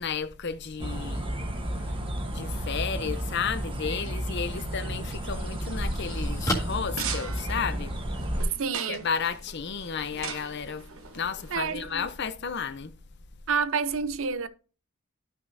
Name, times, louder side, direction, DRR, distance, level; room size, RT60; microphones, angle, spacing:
voice 1, 0.0-1.3 2.3-7.9 8.9-10.9 11.1-12.9, left 6 dB, 55° left, 0.7 m, -32 dB
sound 1, 0.8-8.4, equal, 25° right, 1.1 m, -32 dB
sound 2, 4.9-8.0, equal, 15° left, 1.7 m, -34 dB
sound 3, 6.7-12.2, right 6 dB, 85° right, 1.2 m, -41 dB
voice 2, 8.6-9.1 11.5-12.1 13.5-14.5, right 5 dB, 65° right, 0.6 m, -29 dB
12.0 x 6.0 x 2.6 m
head